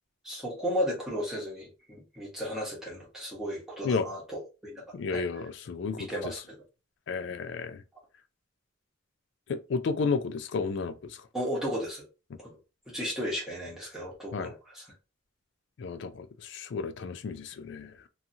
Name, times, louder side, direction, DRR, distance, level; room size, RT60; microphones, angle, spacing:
voice 1, 0.2-4.8 5.1-5.2 6.0-6.4 11.3-12.0 12.4-12.5 12.9-14.9, equal, ahead, 1.0 m, -34 dB
voice 2, 4.9-6.3 7.1-7.8 9.5-11.2 14.3-14.5 15.8-17.9, left 4 dB, 60° left, 0.3 m, -32 dB
2.7 x 2.3 x 2.7 m
head